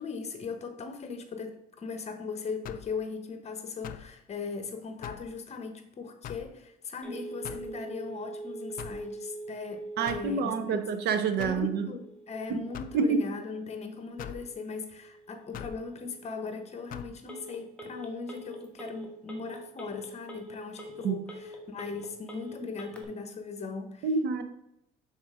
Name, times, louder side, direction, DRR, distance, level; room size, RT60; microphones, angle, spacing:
voice 1, 0.0-10.8 11.4-24.1, left 4 dB, 40° left, 7 dB, 1.1 m, -39 dB
sound 1, 2.6-3.0 3.8-4.1 5.0-5.3 6.2-6.5 7.4-7.7 8.8-9.1 10.1-10.3 11.4-11.6 12.7-13.0 14.2-14.4 15.5-15.8 16.9-17.1, left 10 dB, 55° left, 0.5 m, -42 dB
Telephone, 7.0-23.0, right 1 dB, 5° left, 1.2 m, -44 dB
voice 2, 10.0-11.9 12.5-12.6 12.9-13.2 21.0-21.2 24.0-24.4, right 5 dB, 70° right, 9 dB, 0.8 m, -27 dB
6.3 x 4.1 x 4.9 m, 0.81 s
cardioid pair, 110°, 17 cm